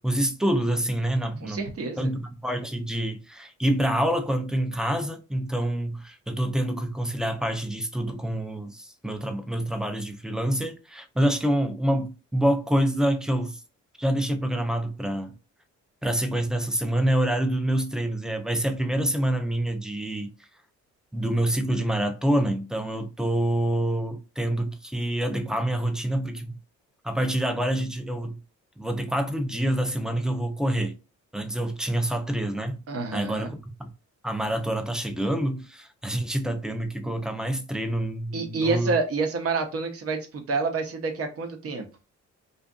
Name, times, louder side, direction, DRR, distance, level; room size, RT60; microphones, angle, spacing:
voice 1, 0.0-1.6 2.0-13.6 14.0-15.4 16.0-20.5 21.1-26.5 27.0-28.4 28.8-31.0 31.3-32.8 33.1-33.9 34.2-38.9, right 1 dB, ahead, 0.4 m, -27 dB
voice 2, 1.4-2.1 32.9-33.5 38.3-41.9, right 4 dB, 50° right, 0.8 m, -28 dB
2.6 x 2.4 x 2.3 m
cardioid pair, 90°, 30 cm